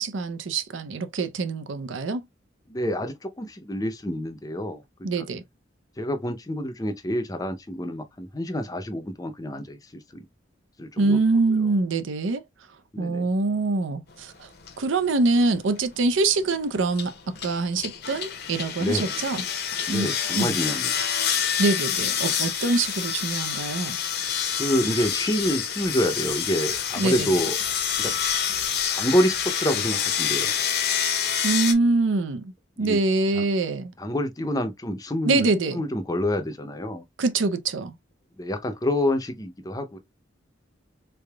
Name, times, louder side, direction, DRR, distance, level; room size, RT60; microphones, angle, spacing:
voice 1, 0.0-2.2 5.0-5.4 11.0-12.4 13.0-14.5 14.8-17.1 17.4-19.4 19.9-20.1 20.3-20.6 21.6-24.0 27.0-27.3 31.4-32.5 32.8-33.9 35.3-35.8 37.2-37.9, right 3 dB, 80° right, 0.6 m, -24 dB
voice 2, 2.7-5.3 6.0-10.3 10.8-11.2 12.9-13.3 18.8-19.2 19.9-21.0 24.6-27.6 28.0-28.1 28.9-30.5 32.8-33.0 33.4-33.5 34.0-37.0 38.4-40.0, equal, 20° left, 0.6 m, -27 dB
sound 1, 14.7-14.8 15.3-15.7 16.9-31.7, left 8 dB, 50° left, 0.7 m, -27 dB
3.7 x 3.4 x 2.2 m
head